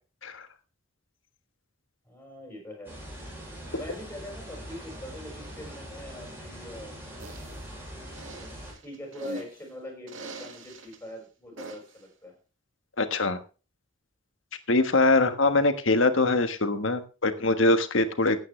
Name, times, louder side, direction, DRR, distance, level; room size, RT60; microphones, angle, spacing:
voice 1, 2.0-3.0 3.7-7.5 8.3-12.3, left 1 dB, 10° left, 2 dB, 5.7 m, -43 dB
sound 1, 2.8-8.7, equal, 10° right, 7.7 m, -42 dB
sound 2, 7.2-7.6 8.1-9.6 10.1-11.0 11.6-12.0, right 2 dB, 75° right, 2.2 m, -42 dB
voice 2, 13.0-13.4 14.7-18.4, left 2 dB, 75° left, 8 dB, 1.5 m, -23 dB
16.5 x 9.1 x 3.3 m, 0.34 s
head